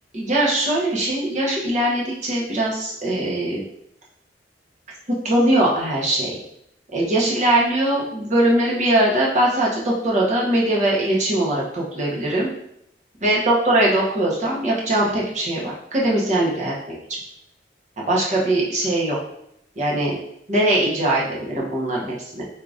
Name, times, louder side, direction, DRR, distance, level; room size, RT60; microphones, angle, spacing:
voice 1, 0.1-3.6 5.2-6.4 6.9-12.5 13.2-16.9 18.0-19.2 19.8-20.2 20.5-22.5, right 1 dB, 40° right, -4 dB, 0.9 m, -21 dB
4.8 x 2.8 x 2.4 m, 0.76 s
head